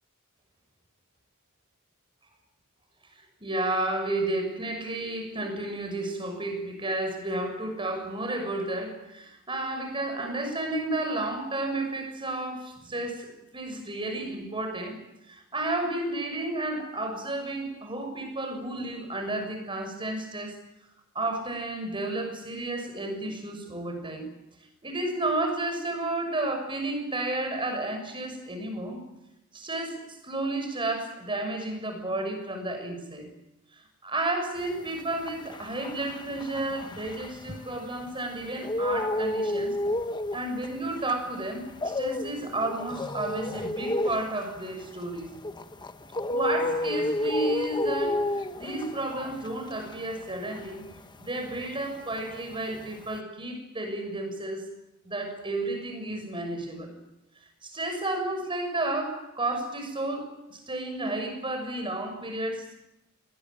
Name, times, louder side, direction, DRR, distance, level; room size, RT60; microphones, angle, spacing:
voice 1, 3.4-15.0 15.3-20.6 21.1-24.3 24.8-29.0 29.5-33.3 34.0-39.8 40.3-45.3 46.3-50.8 51.2-54.7 55.0-56.9 57.6-62.8, right 2 dB, 25° right, 5 dB, 6.5 m, -32 dB
sound 1, 34.8-38.1 38.4-51.9 52.1-53.2, left 1 dB, 20° left, 1.1 m, -31 dB
25.0 x 20.0 x 9.0 m, 0.89 s
head